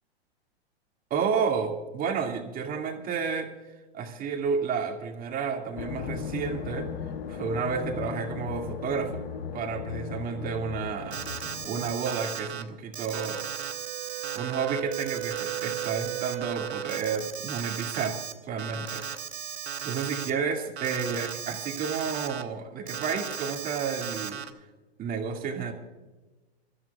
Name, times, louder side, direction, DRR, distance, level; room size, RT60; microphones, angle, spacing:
voice 1, 1.1-3.5 3.9-6.9 7.3-9.2 9.5-13.5 14.3-19.0 19.8-24.4 25.0-25.7, right 6 dB, 25° right, 3 dB, 2.1 m, -31 dB
sound 1, 5.8-11.9, left 7 dB, 60° left, 1.1 m, -37 dB
Alarm, 11.1-12.6 12.9-18.3 18.6-20.3 20.8-22.4 22.9-24.5, right 7 dB, 85° right, 1.1 m, -36 dB
Wind instrument woodwind instrument, 13.3-17.4, right 16 dB, 55° right, 0.8 m, -37 dB
28.5 x 14.0 x 2.3 m, 1.2 s
hypercardioid pair, 115°, 32 cm